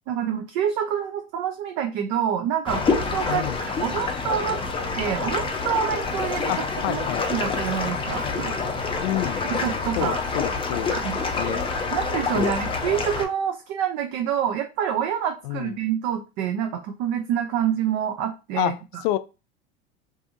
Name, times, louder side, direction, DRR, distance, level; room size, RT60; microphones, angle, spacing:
voice 1, 0.1-6.5 6.9-8.6 9.5-10.2 10.9-11.2 11.9-19.0, right 9 dB, 50° right, 0.5 m, -27 dB
sound 1, 2.7-13.3, left 4 dB, 15° left, 0.6 m, -27 dB
voice 2, 6.5-7.3 9.0-9.4 10.0-11.0 11.4-11.6 12.3-12.5 15.5-15.7 18.6-19.2, left 14 dB, 65° left, 0.4 m, -28 dB
2.6 x 2.6 x 2.4 m
hypercardioid pair, 95°, 32 cm